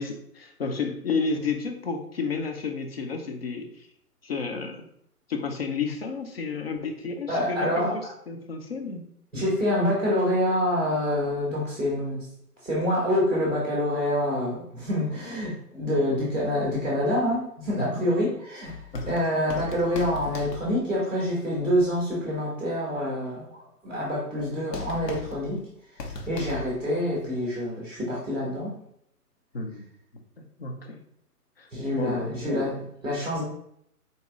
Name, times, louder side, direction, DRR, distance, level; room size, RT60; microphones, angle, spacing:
voice 1, 0.0-3.9 4.2-4.8 5.3-9.0 17.8-18.0 18.9-19.2 29.5-29.9 30.6-31.0 31.6-31.7 32.0-32.3, left 4 dB, 40° left, 4 dB, 0.6 m, -31 dB
voice 2, 7.3-8.0 9.3-12.2 12.6-18.8 19.0-25.6 26.3-28.7 31.7-33.4, equal, ahead, -5 dB, 0.7 m, -26 dB
sound 1, 18.6-21.2 24.5-24.6 24.7-26.9 27.2-27.3, left 4 dB, 80° left, 1.0 m, -38 dB
4.1 x 2.9 x 3.6 m, 0.72 s
hypercardioid pair, 150°, 47 cm